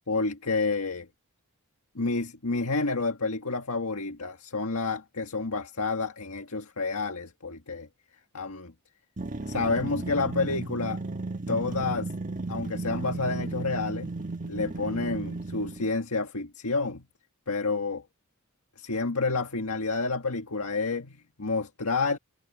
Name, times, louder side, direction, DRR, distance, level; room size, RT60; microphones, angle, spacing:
voice 1, 0.1-1.1 1.9-7.9 8.3-8.7 9.4-11.0 11.5-12.1 12.5-14.2 14.5-17.0 17.5-18.0 18.8-22.2, left 3 dB, 75° left, 1.7 m, -29 dB
sound 1, 9.2-15.9, right 2 dB, 35° right, 1.4 m, -34 dB
head